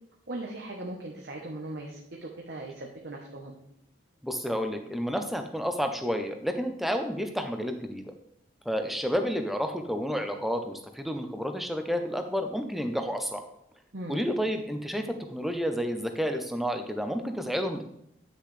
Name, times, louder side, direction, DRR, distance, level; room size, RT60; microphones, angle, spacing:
voice 1, 0.3-3.6 13.9-14.2, right 1 dB, 60° right, 0 dB, 1.0 m, -39 dB
voice 2, 4.2-8.0 8.7-13.4 14.1-17.8, equal, ahead, 6 dB, 0.7 m, -30 dB
9.9 x 6.6 x 3.3 m, 0.76 s
head